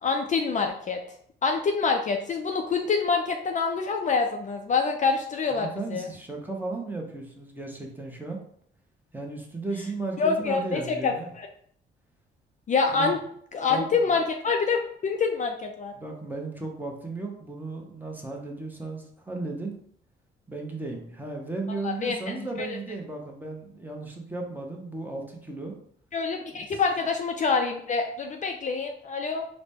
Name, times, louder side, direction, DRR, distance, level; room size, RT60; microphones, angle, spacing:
voice 1, 0.0-1.0 1.4-6.1 10.2-11.5 12.7-13.2 13.5-15.9 21.8-22.8 26.1-29.5, left 4 dB, 40° left, 3 dB, 0.4 m, -26 dB
voice 2, 5.5-8.4 9.1-11.3 12.9-13.2 13.7-13.8 15.9-19.8 20.5-25.8 26.5-26.8, right 3 dB, 10° right, 0 dB, 0.8 m, -35 dB
3.9 x 2.1 x 3.5 m, 0.64 s
cardioid pair, 90°, 20 cm